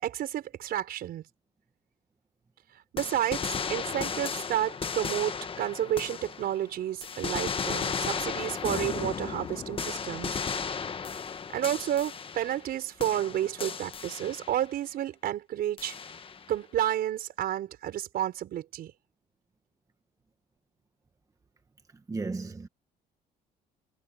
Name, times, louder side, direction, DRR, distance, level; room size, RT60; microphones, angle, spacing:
voice 1, 0.0-1.2 2.9-10.4 11.5-16.0 16.5-18.9, right 11 dB, 65° right, 5.3 m, -31 dB
sound 1, 3.0-6.7 7.0-12.7 13.0-14.7 15.8-16.5, left 6 dB, 30° left, 1.4 m, -35 dB
voice 2, 22.1-22.7, right 3 dB, 20° right, 1.3 m, -34 dB
cardioid pair, 110°, 17 cm